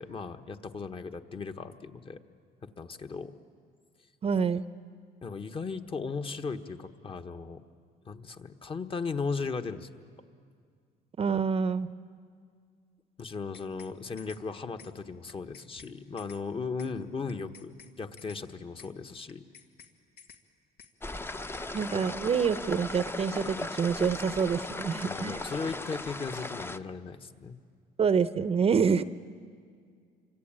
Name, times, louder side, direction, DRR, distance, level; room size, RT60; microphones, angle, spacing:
voice 1, 0.0-2.2 2.6-3.3 5.2-7.6 8.0-9.9 13.2-19.4 25.0-27.6, left 4 dB, 30° left, 8 dB, 1.3 m, -37 dB
voice 2, 4.2-4.7 11.2-11.9 21.7-25.4 28.0-29.0, right 6 dB, 35° right, 14 dB, 0.8 m, -27 dB
sound 1, 13.3-13.9 14.2-14.4 14.8-14.9 15.3-15.9 16.2-16.4 16.8-16.9 17.3-17.9 18.2-18.4 18.8-18.9 19.3-19.9 20.2-20.4 20.8-20.9, left 7 dB, 85° left, 2.0 m, -53 dB
sound 2, 21.0-26.8, left 2 dB, 15° left, 0.8 m, -37 dB
27.5 x 24.5 x 8.9 m, 2.1 s
cardioid pair, 110°, 17 cm